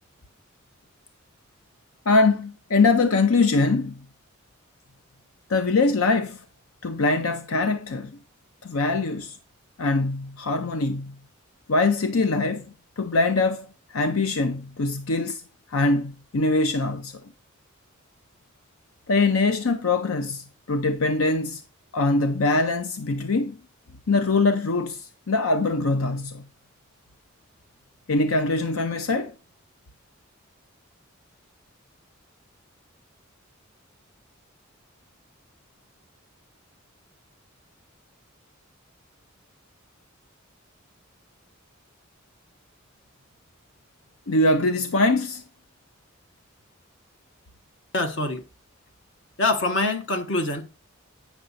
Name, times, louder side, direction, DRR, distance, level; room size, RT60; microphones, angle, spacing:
voice 1, 2.1-4.0 5.5-6.4 6.8-8.2 8.6-9.4 9.8-11.1 11.7-15.4 15.7-17.2 19.1-21.6 21.9-23.6 24.1-26.4 28.1-29.3 44.3-45.4, left 3 dB, 85° left, 0.7 m, -23 dB
voice 2, 47.9-48.4 49.4-50.7, left 2 dB, 60° left, 1.4 m, -25 dB
8.9 x 6.0 x 4.0 m
head